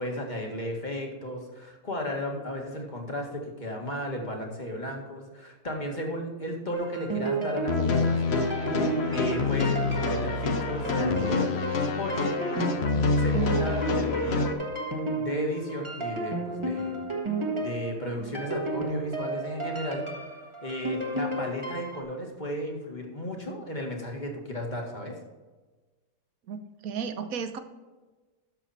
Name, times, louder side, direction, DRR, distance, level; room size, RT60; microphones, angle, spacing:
voice 1, 0.0-8.4 9.1-11.5 12.0-12.3 13.2-14.5 15.2-17.0 17.6-20.0 20.6-25.2, equal, 30° left, 1 dB, 2.0 m, -34 dB
sound 1, 6.7-22.0, right 2 dB, 20° right, 1.5 m, -32 dB
sound 2, 7.7-14.5, left 3 dB, 50° left, 1.2 m, -27 dB
voice 2, 26.5-27.6, right 6 dB, 75° right, 9 dB, 1.4 m, -34 dB
12.0 x 7.1 x 4.3 m, 1.3 s
omnidirectional pair, 1.5 m